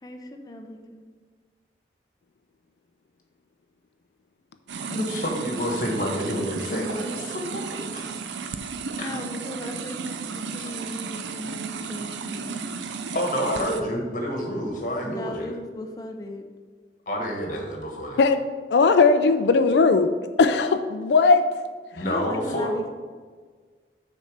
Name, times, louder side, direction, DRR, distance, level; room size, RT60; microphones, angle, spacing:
voice 1, 0.0-1.0 9.0-12.6 15.0-16.5 22.0-22.9, left 1 dB, 20° left, 4 dB, 0.7 m, -37 dB
sound 1, 4.7-13.8, right 5 dB, 90° right, 0.5 m, -34 dB
voice 2, 4.9-7.6 7.9-8.0 9.0-9.1 13.1-15.5 17.1-18.2 21.9-22.7, equal, 50° left, 1 dB, 1.4 m, -28 dB
voice 3, 18.7-21.6 21.9-22.1, left 4 dB, 75° left, 9 dB, 0.4 m, -19 dB
6.5 x 4.3 x 6.5 m, 1.5 s
head